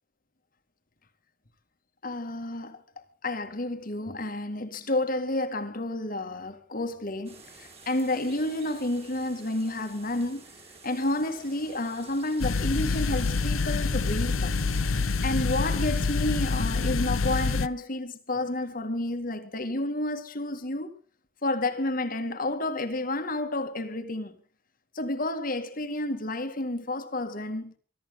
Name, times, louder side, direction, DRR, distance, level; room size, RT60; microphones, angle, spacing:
voice 1, 2.0-10.4 10.8-14.9 15.2-20.9 21.4-24.4 24.9-27.7, left 1 dB, 45° left, 2.0 m, -30 dB
sound 1, 7.2-17.6, right 4 dB, 30° right, 5.2 m, -50 dB
sound 2, 12.4-17.7, left 4 dB, 85° left, 0.8 m, -26 dB
24.0 x 13.5 x 3.8 m
head